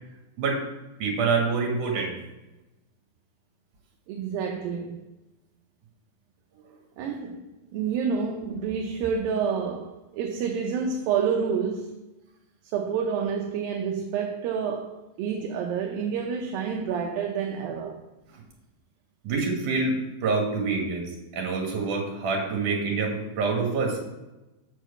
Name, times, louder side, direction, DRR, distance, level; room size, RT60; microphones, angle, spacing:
voice 1, 1.0-2.1 19.2-19.9 20.2-21.1 21.3-24.0, right 4 dB, 60° right, 3.3 m, -26 dB
voice 2, 4.1-5.0 7.0-7.5 7.7-12.0 12.7-18.0, right 6 dB, 80° right, 2.5 m, -28 dB
8.1 x 4.7 x 7.0 m
omnidirectional pair, 4.3 m